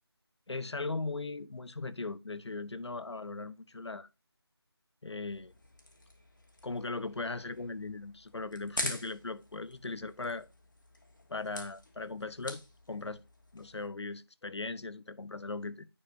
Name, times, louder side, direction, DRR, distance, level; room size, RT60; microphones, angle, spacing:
voice 1, 0.5-4.1 5.0-5.5 6.6-10.5 11.3-12.6 12.9-13.2 13.5-15.9, left 3 dB, 85° left, 0.8 m, -38 dB
sound 1, 5.3-13.9, left 1 dB, 50° left, 1.4 m, -45 dB
9.7 x 5.4 x 2.7 m
figure-of-eight pair, 180°, 14 cm